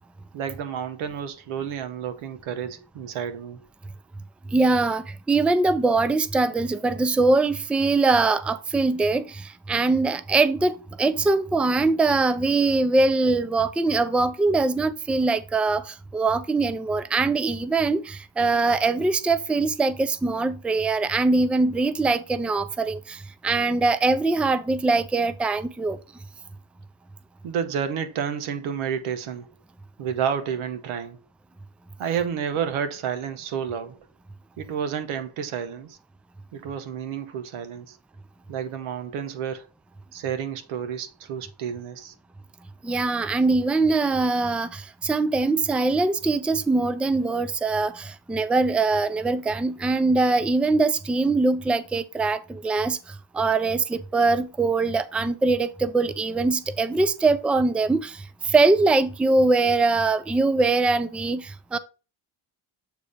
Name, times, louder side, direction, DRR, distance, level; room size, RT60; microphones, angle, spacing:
voice 1, 0.3-3.6 27.4-29.5 30.0-31.2 32.0-34.0 34.6-36.0 36.5-38.0 38.5-39.7 40.1-42.1, right 8 dB, 85° right, 1.0 m, -30 dB
voice 2, 4.5-26.0 42.8-61.8, right 3 dB, 5° right, 0.4 m, -22 dB
8.1 x 2.8 x 5.0 m
cardioid pair, 70°, 48 cm